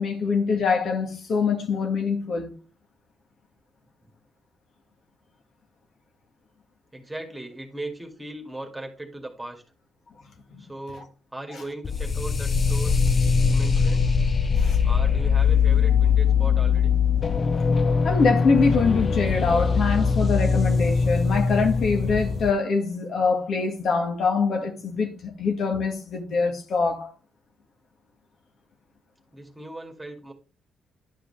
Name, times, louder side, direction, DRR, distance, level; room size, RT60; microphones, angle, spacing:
voice 1, 0.0-2.5 10.5-10.6 14.6-14.8 18.0-27.1, left 4 dB, 60° left, 1.7 m, -24 dB
voice 2, 6.9-9.6 10.6-13.0 13.4-14.1 14.8-17.0 29.3-30.3, right 2 dB, 10° right, 2.1 m, -38 dB
sound 1, 11.8-22.5, left 5 dB, 40° left, 0.6 m, -21 dB
11.0 x 5.0 x 3.3 m
cardioid pair, 90°, 0 cm